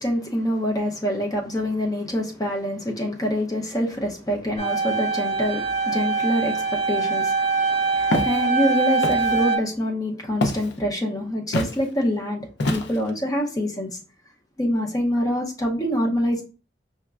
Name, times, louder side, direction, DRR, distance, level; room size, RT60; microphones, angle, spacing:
voice 1, 0.0-13.9 14.6-16.4, equal, 20° left, 0.6 m, -25 dB
sound 1, 4.6-9.6, right 4 dB, 35° right, 0.9 m, -23 dB
Walk footsteps, 8.1-8.4 9.0-9.4 10.4-10.7 11.5-11.8 12.6-13.1, left 1 dB, 75° left, 0.5 m, -25 dB
5.7 x 2.1 x 2.4 m
head